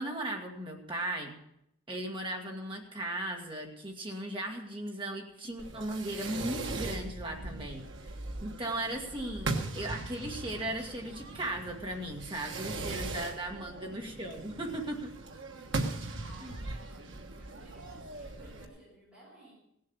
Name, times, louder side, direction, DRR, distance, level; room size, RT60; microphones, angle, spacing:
voice 1, 0.0-1.4 1.9-8.1 8.4-15.1 16.4-16.5, right 1 dB, 25° right, 1 dB, 1.9 m, -37 dB
Fireworks, 5.6-18.7, right 2 dB, 60° right, 1.3 m, -39 dB
voice 2, 13.7-14.0 16.2-19.5, right 2 dB, 5° right, -8 dB, 6.3 m, -56 dB
16.5 x 7.7 x 7.1 m, 0.76 s
head